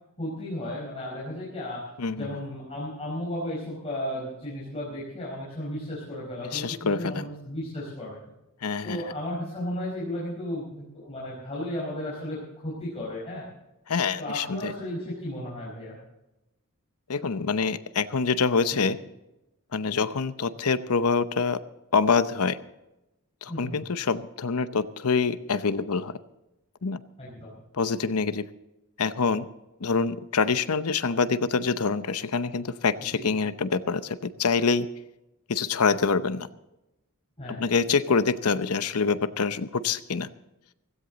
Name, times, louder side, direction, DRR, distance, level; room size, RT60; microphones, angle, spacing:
voice 1, 0.2-1.8 2.1-8.2 8.8-12.4 12.6-13.5 14.2-16.0 18.7-18.8 23.5-23.8 27.2-27.5 33.1-33.3 37.4-37.6, left 1 dB, 30° left, -6 dB, 4.6 m, -34 dB
voice 2, 2.0-2.3 6.5-7.3 8.6-9.0 13.9-14.7 17.1-19.0 19.7-21.6 21.9-22.6 23.4-26.1 26.8-27.0 27.7-28.5 29.0-29.5 29.8-34.9 35.5-36.5 37.5-40.3, left 5 dB, 90° left, 13 dB, 0.8 m, -25 dB
16.5 x 16.5 x 4.0 m, 0.93 s
head